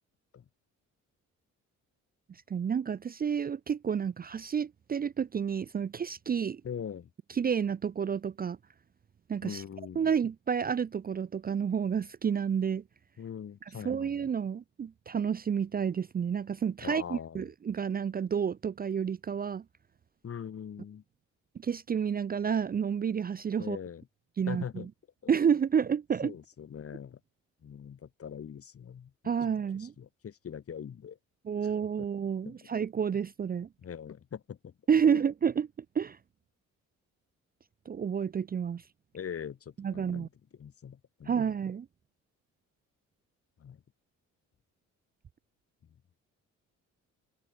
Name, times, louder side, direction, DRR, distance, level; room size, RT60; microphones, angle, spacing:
voice 1, 2.5-6.6 7.3-8.6 9.3-9.6 10.0-12.8 13.8-19.6 21.6-23.8 24.4-24.9 25.3-26.3 29.2-29.9 31.5-33.7 34.9-35.7 35.9-36.2 37.9-38.8 39.8-40.3 41.3-41.9, right 7 dB, 30° right, 0.5 m, -30 dB
voice 2, 6.6-7.1 9.4-10.1 13.2-14.3 16.8-17.5 20.2-21.0 23.6-24.0 24.4-24.9 25.2-25.4 26.2-27.2 27.6-29.1 29.8-31.2 31.6-31.7 32.0-32.1 32.5-32.6 33.8-34.7 35.1-35.2 39.1-40.3 40.6-41.5 43.6-43.8, left 8 dB, 50° left, 2.8 m, -42 dB
cardioid pair, 90°, 30 cm